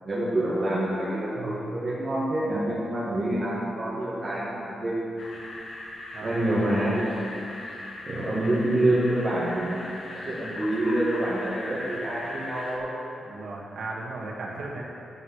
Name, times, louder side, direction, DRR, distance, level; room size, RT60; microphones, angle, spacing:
voice 1, 0.0-5.3 6.2-7.4 8.1-9.8 10.1-13.0, right 1 dB, 30° right, -9 dB, 2.0 m, -27 dB
sound 1, 5.2-12.8, left 1 dB, 60° left, 1.5 m, -38 dB
voice 2, 6.1-6.6 13.2-14.8, right 2 dB, 60° right, -2 dB, 1.5 m, -36 dB
14.0 x 4.9 x 5.9 m, 2.6 s
wide cardioid pair, 160°, 0 cm